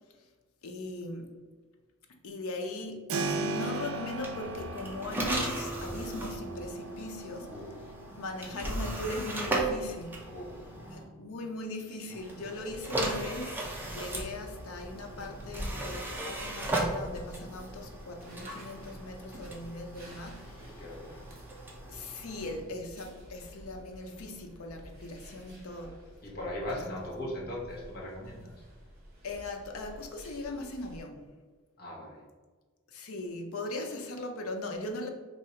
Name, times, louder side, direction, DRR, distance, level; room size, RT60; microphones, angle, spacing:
voice 1, 0.6-1.3 2.2-7.5 8.1-10.2 10.9-20.9 21.9-26.0 26.8-27.0 29.2-31.2 32.9-35.1, left 2 dB, 90° left, 4 dB, 0.6 m, -39 dB
Keyboard (musical), 3.1-13.8, right 2 dB, 85° right, 0.4 m, -40 dB
sound 1, 4.1-11.0 12.1-22.6, right 1 dB, 10° right, 0.5 m, -37 dB
voice 2, 7.5-7.8 8.4-8.5 10.2-11.1 20.8-21.2 25.8-25.9 26.2-28.5 31.8-32.2, left 1 dB, 45° left, -4 dB, 1.0 m, -40 dB
sound 2, 12.5-31.0, equal, 45° right, 1.2 m, -51 dB
2.8 x 2.7 x 4.3 m, 1.4 s
head